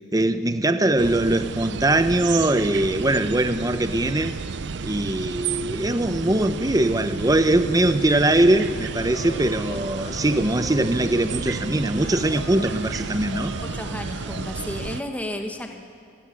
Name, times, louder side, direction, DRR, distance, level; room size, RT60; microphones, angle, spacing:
voice 1, 0.1-4.4 4.8-13.6, right 1 dB, 20° right, 0.8 m, -21 dB
sound 1, 1.0-15.0, right 5 dB, 65° right, 0.5 m, -32 dB
sound 2, 9.0-12.7 13.0-13.7 14.0-14.7, left 2 dB, 80° left, 7.2 m, -39 dB
voice 2, 13.6-15.8, left 1 dB, 10° left, 1.3 m, -33 dB
22.5 x 16.5 x 9.7 m
head